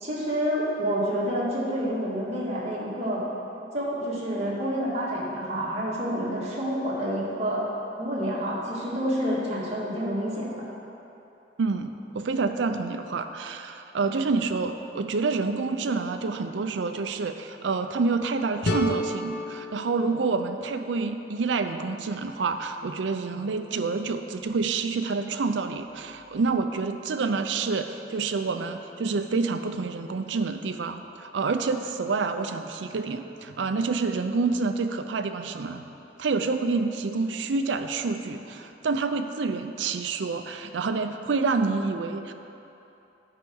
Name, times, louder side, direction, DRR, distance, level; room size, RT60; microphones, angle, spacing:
voice 1, 0.0-3.2 3.7-7.6 8.0-10.7, equal, 35° right, -6 dB, 1.9 m, -28 dB
voice 2, 11.6-35.9 36.2-42.3, right 4 dB, 80° right, 7 dB, 0.5 m, -28 dB
sound 1, 18.6-21.5, left 1 dB, 60° left, 0.6 m, -32 dB
9.8 x 4.8 x 6.3 m, 3.0 s
head